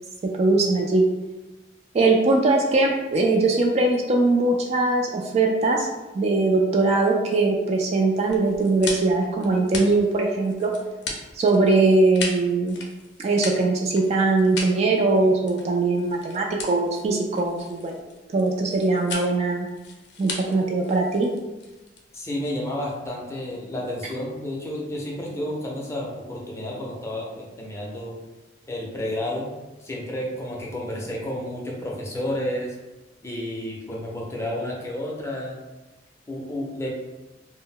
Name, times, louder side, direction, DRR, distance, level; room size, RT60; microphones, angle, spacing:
voice 1, 0.2-1.1 1.9-5.9 6.1-10.7 11.4-12.8 13.2-18.0 18.3-19.7 20.2-21.3, right 3 dB, 35° right, 0 dB, 0.3 m, -21 dB
sound 1, 8.3-22.9, left 3 dB, 65° left, 0.5 m, -37 dB
voice 2, 22.1-28.1 28.7-29.5 29.8-32.7 33.2-35.6 36.3-36.9, left 1 dB, 15° left, -3 dB, 0.5 m, -31 dB
2.1 x 2.0 x 3.7 m, 1.1 s
head